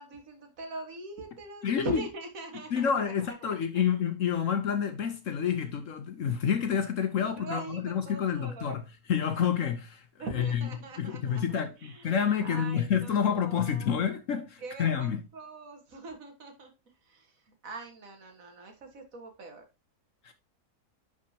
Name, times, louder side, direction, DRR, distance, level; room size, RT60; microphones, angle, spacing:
voice 1, 0.0-3.9 7.2-8.8 10.2-13.9 14.6-16.7 17.0-19.6, right 3 dB, 55° right, 2.0 m, -42 dB
voice 2, 1.6-2.0 2.7-8.8 9.1-10.0 10.3-10.6 11.0-15.2 20.2-20.3, left 8 dB, 55° left, 1.0 m, -28 dB
10.5 x 4.9 x 2.8 m
omnidirectional pair, 1.8 m